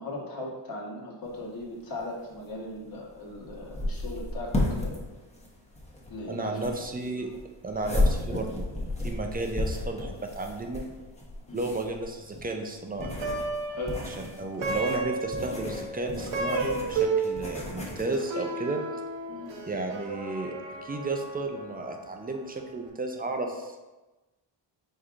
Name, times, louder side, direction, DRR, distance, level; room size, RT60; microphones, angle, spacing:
voice 1, 0.0-4.9 6.1-6.6 7.1-7.3 11.5-11.7 13.7-13.9 19.3-19.5, left 1 dB, 45° left, -2 dB, 1.2 m, -38 dB
sound 1, 1.2-18.0, left 1 dB, 15° left, 0.9 m, -33 dB
voice 2, 6.3-7.3 7.6-10.9 11.5-13.1 14.1-18.8 19.7-20.6 20.8-23.8, right 2 dB, 20° right, 3 dB, 0.4 m, -33 dB
Plucked string instrument, 13.0-22.4, right 3 dB, 65° right, 0.9 m, -33 dB
4.4 x 3.7 x 2.5 m, 1.1 s
cardioid pair, 85°, 47 cm